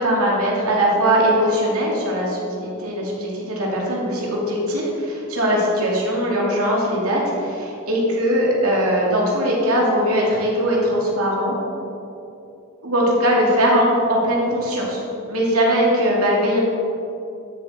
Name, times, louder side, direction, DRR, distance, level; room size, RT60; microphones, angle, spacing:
voice 1, 0.0-11.6 12.8-16.6, equal, 80° right, -3 dB, 2.5 m, -20 dB
12.5 x 7.6 x 4.4 m, 2.8 s
head